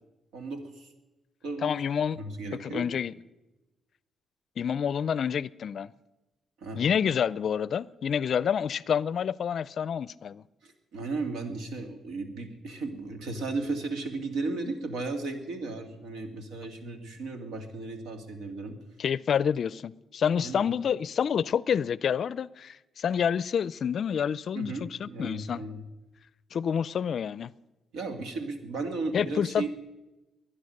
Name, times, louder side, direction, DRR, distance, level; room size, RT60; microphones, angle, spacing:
voice 1, 0.3-0.9 1.4-1.8 2.1-2.9 6.6-6.9 10.6-18.8 20.4-20.7 24.5-25.8 27.9-29.7, right 3 dB, 80° right, 2.4 m, -35 dB
voice 2, 1.6-2.2 2.6-3.1 4.6-5.9 6.8-10.4 19.0-25.7 26.5-27.5 29.1-29.7, left 7 dB, 55° left, 0.4 m, -28 dB
21.5 x 10.0 x 6.5 m
cardioid pair, 90°, 0 cm